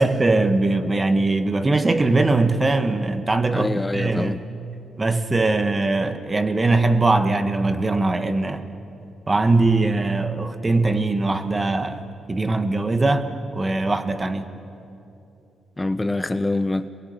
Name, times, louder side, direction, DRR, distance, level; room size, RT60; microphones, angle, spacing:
voice 1, 0.0-4.4 5.0-8.6 9.3-14.5, right 2 dB, 25° right, 1.8 m, -21 dB
voice 2, 3.5-4.4 15.8-16.9, left 2 dB, 15° left, 0.9 m, -25 dB
27.0 x 22.0 x 9.8 m
cardioid pair, 70°, 0 cm